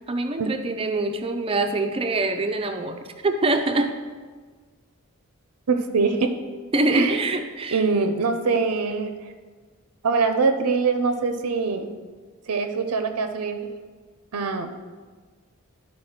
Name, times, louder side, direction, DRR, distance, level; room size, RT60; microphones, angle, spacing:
voice 1, 0.0-3.9 6.7-7.8, right 2 dB, 25° right, 6 dB, 0.5 m, -24 dB
voice 2, 5.7-6.3 6.9-7.2 7.7-9.1 10.0-11.9 12.5-13.7 14.3-14.7, right 4 dB, 85° right, 6 dB, 0.6 m, -23 dB
11.5 x 4.2 x 4.3 m, 1.5 s
head